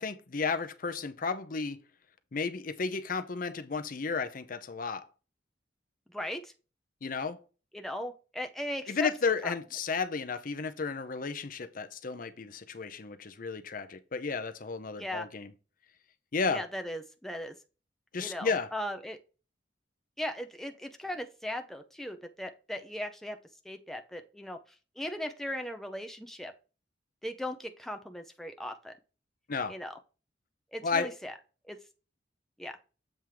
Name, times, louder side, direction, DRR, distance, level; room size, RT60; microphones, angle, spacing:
voice 1, 0.0-1.8 2.3-5.1 7.0-7.4 8.9-15.5 16.3-16.6 18.1-18.7 29.5-29.7 30.8-31.1, left 4 dB, 50° left, 0.7 m, -33 dB
voice 2, 6.1-6.5 7.7-9.1 9.4-9.5 15.0-15.3 16.5-17.5 18.2-19.2 20.2-23.4 23.6-24.6 25.0-26.5 27.2-28.9 29.7-29.9 30.7-31.3 31.7-31.8 32.6-32.8, left 1 dB, ahead, 0.6 m, -38 dB
7.5 x 3.6 x 4.7 m
head